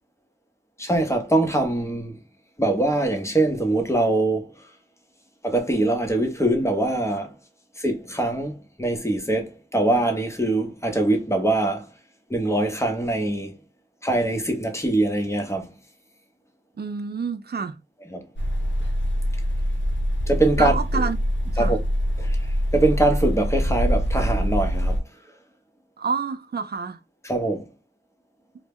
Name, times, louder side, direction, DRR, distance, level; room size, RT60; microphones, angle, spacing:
voice 1, 0.8-2.2 2.6-4.5 5.4-7.3 7.8-11.9 12.3-13.5 14.0-15.7 18.1-18.2 20.3-21.0 21.6-21.8 22.2-22.4 22.7-25.0 27.2-27.7, right 2 dB, 15° left, 0.7 m, -23 dB
voice 2, 16.8-17.8 20.6-21.2 21.4-21.8 26.0-27.0, right 5 dB, 60° right, 0.4 m, -28 dB
sound 1, 18.4-25.0, equal, 85° left, 0.6 m, -24 dB
2.1 x 2.0 x 3.4 m
wide cardioid pair, 50°, 19 cm